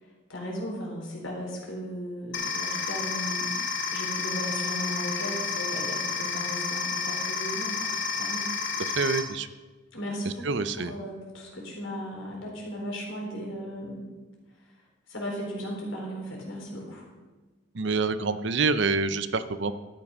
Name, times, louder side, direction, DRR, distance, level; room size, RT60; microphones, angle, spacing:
voice 1, 0.0-3.5 3.9-8.5 9.9-14.1 15.1-17.1, equal, 85° left, -1 dB, 4.1 m, -36 dB
sound 1, 2.3-9.2, left 5 dB, 65° left, 2.0 m, -30 dB
voice 2, 8.9-9.5 10.4-10.9 17.7-19.7, right 4 dB, 65° right, 13 dB, 0.7 m, -26 dB
12.5 x 9.7 x 5.5 m, 1.3 s
head